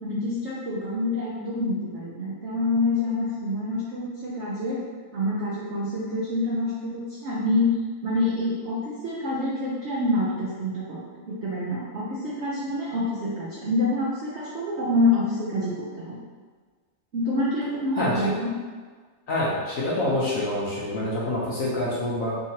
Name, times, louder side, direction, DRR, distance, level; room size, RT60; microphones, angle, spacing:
voice 1, 0.0-4.8 5.1-11.0 11.3-16.2 17.1-18.5, left 2 dB, 75° right, -7 dB, 0.6 m, -27 dB
voice 2, 19.3-22.4, left 1 dB, 60° left, -6 dB, 1.0 m, -26 dB
3.6 x 3.0 x 2.8 m, 1.5 s
omnidirectional pair, 2.0 m